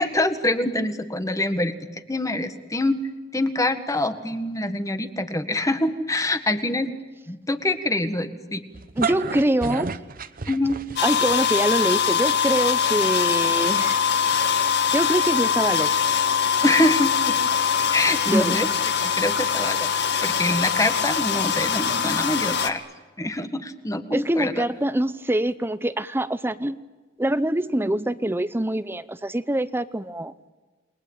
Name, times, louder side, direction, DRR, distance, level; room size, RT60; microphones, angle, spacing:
voice 1, 0.0-1.7 2.1-3.0 3.3-6.9 7.3-8.6 10.5-10.8 16.6-17.4 17.9-18.7 19.0-19.9 20.2-22.8 23.2-24.6, left 1 dB, 15° left, 9 dB, 1.8 m, -25 dB
sound 1, 8.7-11.3, right 5 dB, 50° right, 1.0 m, -30 dB
voice 2, 9.0-9.9 11.0-14.0 14.9-15.9 18.3-18.6 24.1-26.8 27.2-30.3, right 1 dB, 10° right, 13 dB, 0.8 m, -24 dB
sound 2, 11.0-22.7, left 7 dB, 60° left, 1.9 m, -22 dB
29.0 x 22.0 x 9.0 m, 1.3 s
head